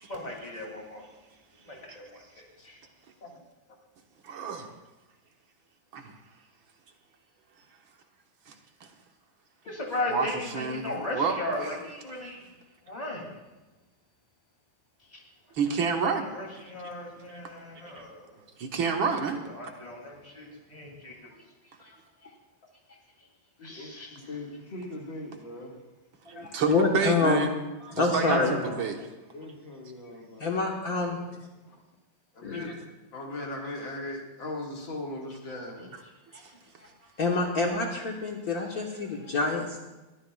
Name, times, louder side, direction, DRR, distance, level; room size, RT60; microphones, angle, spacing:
voice 1, 0.1-1.0 1.7-2.8 9.6-12.4 12.9-13.3 15.1-15.2 15.8-15.9 16.3-18.2 19.5-21.1 21.8-21.9 23.6-24.1 28.2-28.8 36.3-36.4, left 1 dB, 20° left, -1 dB, 3.0 m, -36 dB
voice 2, 4.2-4.7 5.9-6.1 8.5-8.6 8.8-8.9 10.1-11.7 15.5-16.3 17.9-18.0 18.6-19.4 26.3-27.5 27.9-29.0, right 5 dB, 75° right, 3 dB, 2.0 m, -29 dB
voice 3, 23.6-25.8 29.3-31.2 31.7-31.8 32.3-32.7 33.1-35.9, left 2 dB, 65° left, -1 dB, 2.8 m, -39 dB
voice 4, 26.3-27.5 27.8-28.5 30.4-31.2 32.4-32.7 37.2-39.8, left 3 dB, 50° left, -1 dB, 1.7 m, -27 dB
22.0 x 14.0 x 2.4 m, 1.1 s
omnidirectional pair, 2.2 m